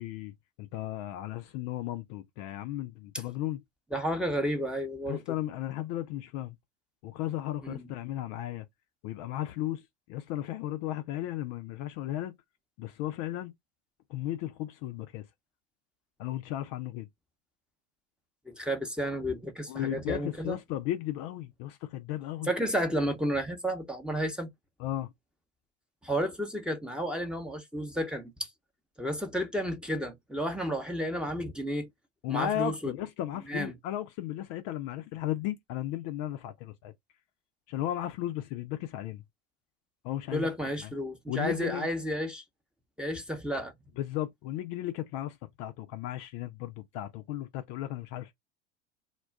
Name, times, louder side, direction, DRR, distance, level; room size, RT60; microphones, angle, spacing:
voice 1, 0.0-3.6 5.1-6.6 7.0-8.7 9.0-9.8 10.1-12.3 12.8-13.5 14.1-15.2 16.2-17.1 19.7-22.5 24.8-25.1 32.2-36.9 37.7-39.2 40.0-40.5 41.3-41.9 44.0-48.3, left 13 dB, 50° left, 0.5 m, -35 dB
voice 2, 3.9-5.2 7.6-7.9 18.5-20.6 22.5-24.5 26.0-28.5 29.0-31.9 32.3-32.9 33.5-33.7 40.3-42.4 43.0-43.7, equal, ahead, 0.7 m, -32 dB
2.3 x 2.1 x 3.4 m
hypercardioid pair, 85°, 36 cm